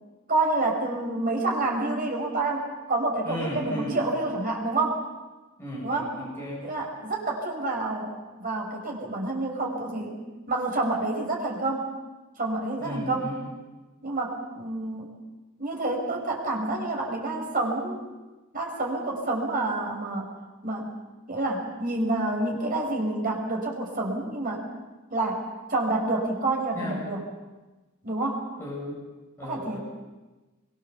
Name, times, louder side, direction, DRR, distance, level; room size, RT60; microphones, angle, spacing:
voice 1, 0.3-5.0 5.8-6.1 6.6-10.2 10.5-11.9 12.4-13.3 14.0-15.1 15.6-18.0 18.5-20.3 20.6-20.9 21.3-24.6 25.1-27.2 28.0-28.5 29.4-29.8, right 2 dB, 40° right, 1 dB, 5.5 m, -28 dB
voice 2, 3.2-4.0 5.6-6.7 12.8-13.5 26.7-27.0 28.5-29.0 29.4-29.8, equal, 10° left, -5 dB, 8.0 m, -35 dB
24.5 x 23.0 x 7.1 m, 1.2 s
head